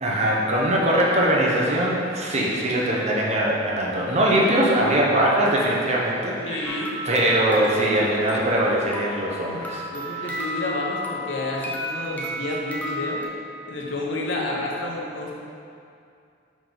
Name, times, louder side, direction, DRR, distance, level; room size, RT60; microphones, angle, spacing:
voice 1, 0.0-9.8 10.1-10.4, right 1 dB, 35° right, -3 dB, 0.9 m, -22 dB
voice 2, 6.4-6.9 9.9-13.2 13.6-15.3, left 2 dB, 70° left, -2 dB, 1.0 m, -30 dB
sound 1, 6.7-13.3, equal, 10° left, 0.6 m, -33 dB
5.3 x 5.0 x 3.9 m, 2.4 s
head